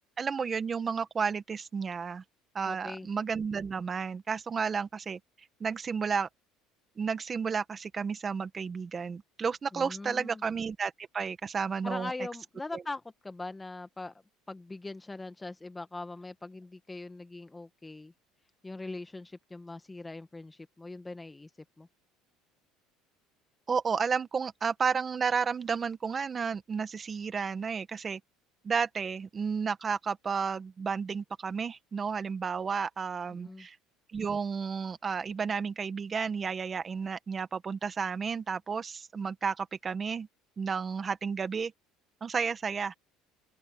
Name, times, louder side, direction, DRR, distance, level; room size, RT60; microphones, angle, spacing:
voice 1, 0.2-2.2 2.5-5.2 5.6-6.3 7.0-12.1 12.7-12.8 23.7-28.2 28.6-33.8 34.1-40.3 40.6-41.7 42.2-42.9, right 6 dB, 30° right, 1.6 m, -32 dB
voice 2, 2.6-3.1 9.7-10.4 11.8-18.1 18.6-21.5 21.8-21.9 33.3-33.7, left 2 dB, 15° left, 1.6 m, -41 dB
open air
supercardioid pair, 105°, 0 cm